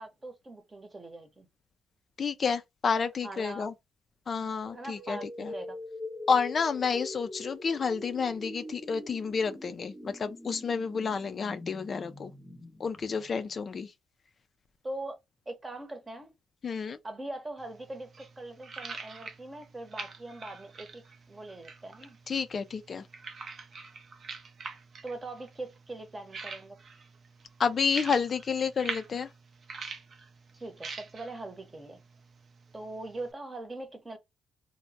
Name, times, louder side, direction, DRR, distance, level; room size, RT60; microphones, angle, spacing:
voice 1, 0.0-1.5 3.2-3.7 4.7-5.2 5.5-5.8 14.8-15.2 15.5-16.3 17.0-22.2 25.0-26.8 30.5-32.0 32.7-34.2, right 2 dB, 20° right, 0.8 m, -41 dB
voice 2, 2.2-3.7 4.3-5.5 6.3-12.3 12.8-13.9 16.6-17.0 22.3-23.0 27.6-29.3, left 5 dB, 45° left, 0.3 m, -30 dB
sound 1, 4.6-13.6, left 1 dB, 15° left, 1.0 m, -44 dB
sound 2, 17.6-33.3, right 4 dB, 45° right, 0.5 m, -45 dB
3.1 x 2.0 x 2.6 m
cardioid pair, 90°, 0 cm